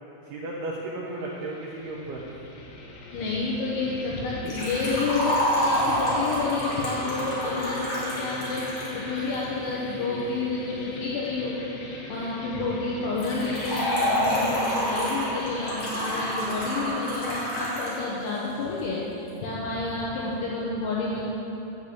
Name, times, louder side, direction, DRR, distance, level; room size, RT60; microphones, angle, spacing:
voice 1, 0.3-2.4, right 2 dB, 85° right, -4 dB, 2.2 m, -34 dB
sound 1, 1.2-17.9, left 2 dB, 90° left, 4.3 m, -42 dB
voice 2, 3.1-21.2, left 3 dB, 75° left, -5 dB, 3.3 m, -29 dB
Liquid, 4.5-9.4 13.2-18.0 18.3-18.4 19.3-19.4, equal, 40° left, 2.7 m, -28 dB
10.5 x 7.3 x 8.0 m, 3.0 s
omnidirectional pair, 5.9 m